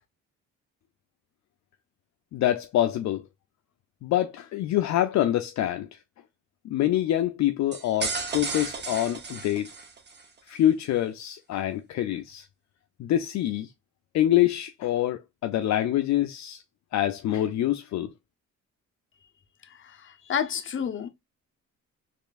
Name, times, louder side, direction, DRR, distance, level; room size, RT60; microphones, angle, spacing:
voice 1, 2.3-3.2 4.0-5.9 6.6-9.7 10.5-12.5 13.0-13.7 14.1-16.6 16.9-18.1, left 12 dB, 65° left, 0.5 m, -25 dB
sound 1, 7.7-10.3, right 4 dB, 35° right, 0.8 m, -34 dB
voice 2, 19.8-21.1, left 7 dB, 40° left, 0.8 m, -30 dB
4.3 x 3.1 x 2.4 m
cardioid pair, 90°, 30 cm